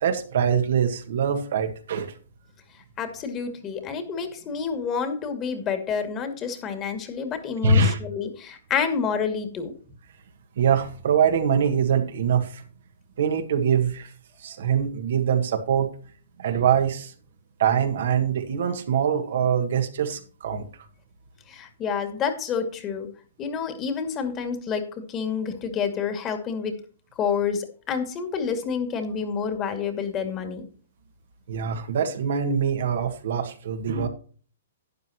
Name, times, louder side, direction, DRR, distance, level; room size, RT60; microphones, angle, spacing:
voice 1, 0.0-2.1 7.6-8.0 10.6-12.6 13.2-14.1 14.4-15.9 16.4-17.1 17.6-20.7 31.5-34.1, right 6 dB, 65° right, 6 dB, 1.7 m, -23 dB
voice 2, 3.0-9.7 21.5-23.1 23.4-26.7 27.2-30.6, left 6 dB, 25° left, 6 dB, 2.3 m, -28 dB
12.0 x 9.5 x 3.0 m, 0.42 s
hypercardioid pair, 130°, 0 cm